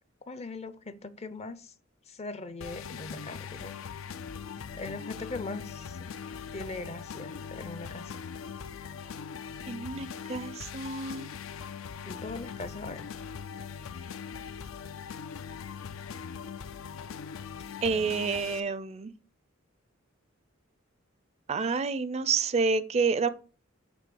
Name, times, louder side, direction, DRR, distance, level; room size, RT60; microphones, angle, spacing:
voice 1, 0.3-1.7 2.1-4.1 4.7-6.1 6.5-8.2 12.0-13.1, left 3 dB, 30° left, 0.5 m, -40 dB
sound 1, 2.6-18.6, left 6 dB, 80° left, 0.5 m, -41 dB
voice 2, 9.7-11.3 17.8-19.1 21.5-23.3, right 4 dB, 30° right, 0.4 m, -29 dB
7.7 x 3.1 x 6.1 m
head